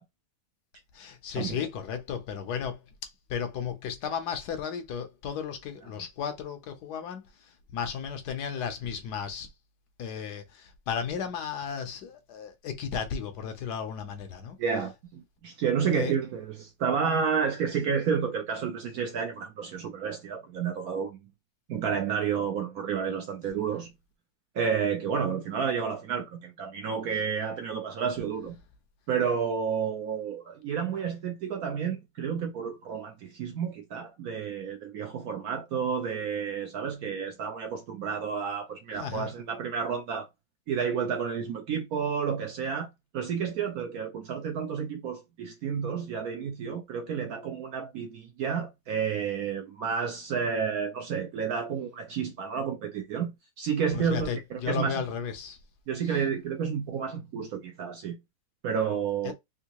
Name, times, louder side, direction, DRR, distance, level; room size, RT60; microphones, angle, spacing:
voice 1, 0.9-2.8 3.3-9.5 10.0-14.6 15.9-16.2 38.9-39.3 53.9-55.6 56.0-56.2 59.2-59.3, left 7 dB, 70° left, 1.2 m, -34 dB
voice 2, 14.6-21.2 21.7-23.9 24.5-28.6 29.1-40.3 40.7-42.9 43.1-53.3 53.6-55.0 55.9-58.2 58.6-59.3, right 6 dB, 70° right, 0.9 m, -30 dB
3.6 x 2.6 x 2.9 m
omnidirectional pair, 2.0 m